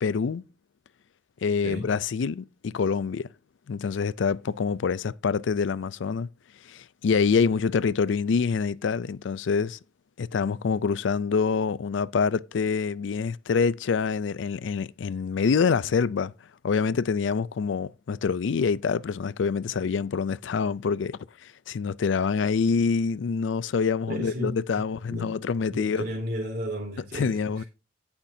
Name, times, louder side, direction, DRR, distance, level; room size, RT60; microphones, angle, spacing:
voice 1, 0.0-0.4 1.4-3.3 3.7-6.3 6.7-9.8 10.2-16.3 16.6-21.2 21.7-26.0 27.1-27.6, left 5 dB, 85° left, 0.4 m, -26 dB
voice 2, 24.1-25.3 25.7-27.7, equal, 55° right, 3.6 m, -34 dB
17.0 x 5.8 x 2.7 m
head